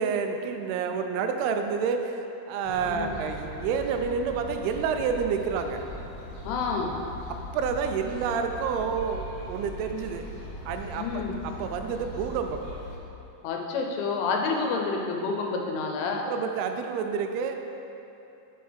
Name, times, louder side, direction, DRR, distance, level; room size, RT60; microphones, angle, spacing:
voice 1, 0.0-5.8 7.5-10.2 10.7-12.6 16.3-17.6, right 6 dB, 90° right, 6 dB, 2.5 m, -29 dB
sound 1, 2.6-13.0, left 1 dB, 70° left, 2.2 m, -40 dB
voice 2, 6.4-7.0 11.0-11.4 13.4-16.2, left 4 dB, 90° left, 1 dB, 2.7 m, -29 dB
7.7 x 6.4 x 3.4 m, 2.9 s
omnidirectional pair, 4.4 m